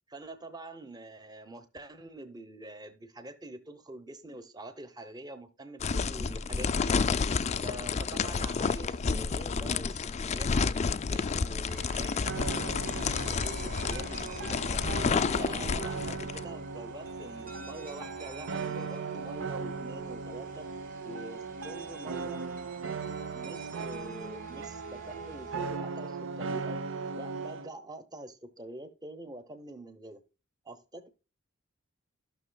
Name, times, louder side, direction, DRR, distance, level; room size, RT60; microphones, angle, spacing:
voice 1, 0.1-7.0 7.6-10.8 11.1-14.8 15.4-20.7 21.0-22.5 23.3-26.8 27.1-30.2 30.6-31.1, right 2 dB, 20° right, 0.9 m, -45 dB
sound 1, 5.8-16.4, left 5 dB, 35° left, 0.4 m, -30 dB
sound 2, 11.7-25.8, right 3 dB, 40° right, 1.7 m, -49 dB
sound 3, 12.3-27.7, right 4 dB, 65° right, 0.7 m, -38 dB
14.0 x 6.2 x 2.3 m
head